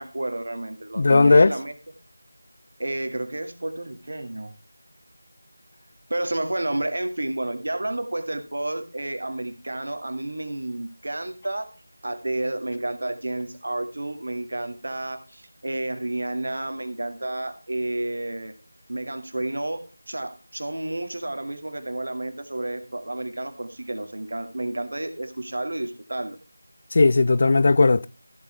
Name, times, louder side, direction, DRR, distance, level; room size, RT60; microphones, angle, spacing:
voice 1, 0.0-1.7 2.8-4.5 6.1-11.7 12.0-18.5 18.9-26.4, right 1 dB, 60° right, 2.2 m, -31 dB
voice 2, 1.0-1.5 26.9-28.1, left 3 dB, 35° left, 0.5 m, -16 dB
14.0 x 8.5 x 3.4 m
figure-of-eight pair, 170°, 0 cm